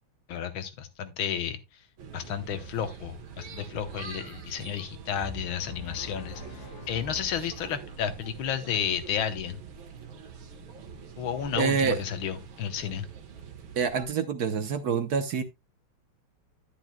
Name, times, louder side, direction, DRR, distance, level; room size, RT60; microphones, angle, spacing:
voice 1, 0.3-1.6 2.1-9.6 11.2-13.1, left 8 dB, 85° left, 1.8 m, -32 dB
sound 1, 2.0-14.0, right 6 dB, 90° right, 2.0 m, -45 dB
sound 2, 5.2-8.2, left 2 dB, 40° left, 1.6 m, -45 dB
voice 2, 11.6-12.0 13.8-15.4, right 6 dB, 60° right, 1.2 m, -26 dB
10.5 x 10.0 x 2.2 m
omnidirectional pair, 2.2 m